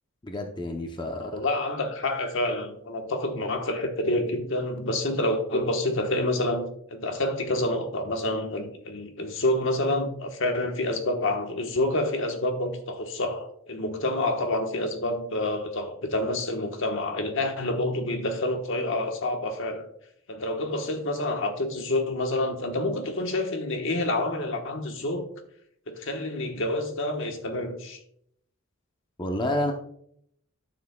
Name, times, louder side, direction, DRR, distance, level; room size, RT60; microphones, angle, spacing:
voice 1, 0.2-1.4 29.2-29.7, left 1 dB, 20° left, 0.7 m, -29 dB
voice 2, 1.0-19.8 20.3-25.2 25.9-28.0, left 1 dB, 60° left, 1.2 m, -28 dB
12.0 x 6.9 x 2.3 m
head